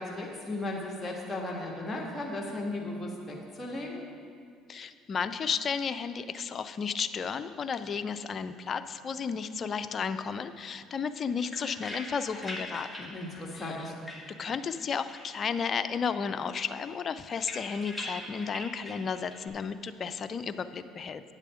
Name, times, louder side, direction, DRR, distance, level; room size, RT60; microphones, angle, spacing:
voice 1, 0.0-4.0 13.1-13.9, left 2 dB, 20° left, -2 dB, 1.7 m, -36 dB
voice 2, 4.7-13.2 13.5-13.9 14.4-21.2, left 6 dB, 45° left, 11 dB, 0.5 m, -33 dB
sound 1, 11.1-14.8 15.1-16.0 16.2-19.5, left 1 dB, ahead, 1.8 m, -43 dB
9.4 x 7.4 x 5.0 m, 2.1 s
hypercardioid pair, 70°, 0 cm